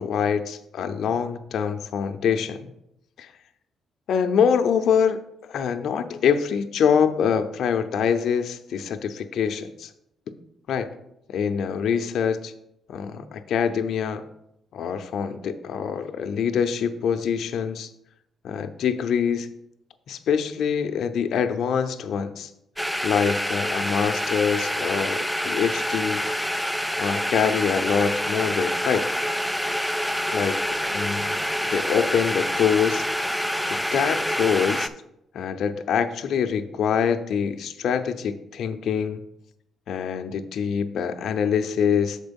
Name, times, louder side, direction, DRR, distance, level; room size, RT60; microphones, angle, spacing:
voice 1, 0.0-2.7 3.2-3.3 4.1-5.2 5.5-9.9 10.7-10.9 11.3-12.5 12.9-14.2 14.7-17.9 18.4-19.5 20.1-22.5 23.0-26.2 27.0-29.1 30.3-33.0 33.7-34.9 35.3-39.2 39.9-42.2, left 7 dB, 70° left, 8 dB, 0.5 m, -25 dB
sound 1, 22.8-34.9, equal, ahead, 0.4 m, -27 dB
6.4 x 4.4 x 5.2 m, 0.79 s
cardioid pair, 90°, 0 cm